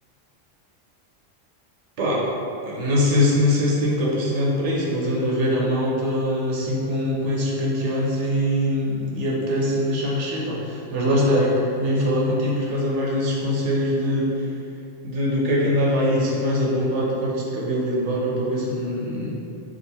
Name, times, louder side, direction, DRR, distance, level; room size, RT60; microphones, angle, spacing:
voice 1, 2.6-14.5 15.0-19.3, left 1 dB, 65° right, -4 dB, 0.9 m, -22 dB
3.8 x 2.4 x 4.1 m, 2.7 s
omnidirectional pair, 1.3 m